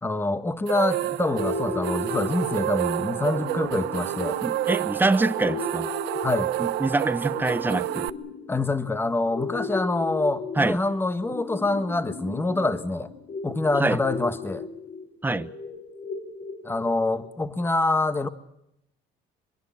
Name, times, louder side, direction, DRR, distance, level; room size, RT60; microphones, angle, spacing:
voice 1, 0.0-4.4 6.2-6.5 8.5-13.1 13.4-14.7 16.6-18.3, left 2 dB, 15° left, 1.7 m, -26 dB
sound 1, 0.7-8.1, right 15 dB, 85° right, 0.9 m, -29 dB
sound 2, 1.3-17.3, left 5 dB, 50° left, 7.4 m, -36 dB
voice 2, 4.4-5.9 6.6-8.1 10.6-10.8 13.8-14.0 15.2-15.5, right 2 dB, 10° right, 1.1 m, -25 dB
24.5 x 22.5 x 7.3 m
cardioid pair, 110°, 17 cm